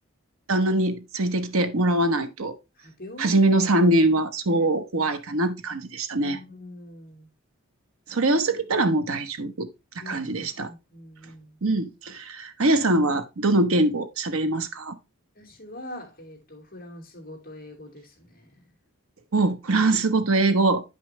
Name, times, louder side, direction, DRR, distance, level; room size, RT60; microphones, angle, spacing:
voice 1, 0.5-2.5 3.2-6.4 8.1-9.7 10.1-10.7 11.6-15.0 19.3-20.8, right 2 dB, 80° right, 1.1 m, -23 dB
voice 2, 2.8-3.5 4.5-4.6 6.2-7.3 10.0-11.6 15.4-18.6, left 1 dB, 40° left, 2.5 m, -43 dB
10.0 x 5.5 x 3.2 m
head